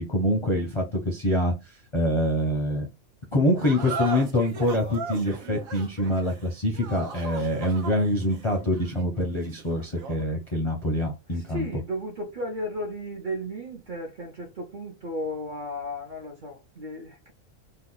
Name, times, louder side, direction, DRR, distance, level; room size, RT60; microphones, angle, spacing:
voice 1, 0.0-1.5 1.9-2.9 3.3-11.7, left 1 dB, 35° left, 0.5 m, -25 dB
sound 1, 3.6-10.3, right 4 dB, 85° right, 1.2 m, -37 dB
voice 2, 11.3-17.3, equal, 45° right, 0.7 m, -34 dB
2.9 x 2.2 x 3.8 m
omnidirectional pair, 1.4 m